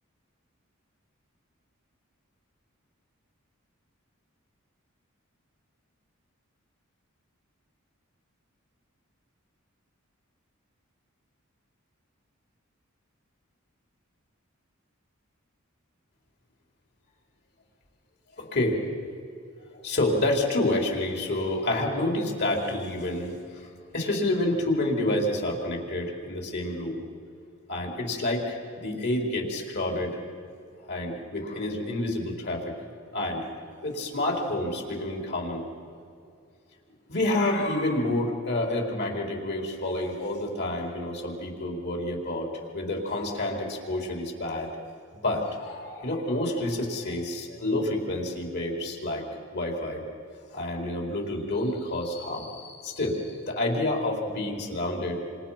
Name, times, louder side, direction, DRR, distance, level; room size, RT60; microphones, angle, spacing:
voice 1, 18.4-18.8 19.7-23.7 23.9-27.0 27.7-30.2 30.9-32.7 33.1-33.4 33.8-35.6 37.1-42.5 42.7-44.7 45.2-49.2 49.5-50.0 50.5-55.2, left 1 dB, 55° left, 0 dB, 4.6 m, -28 dB
28.5 x 27.5 x 6.0 m, 2.4 s
head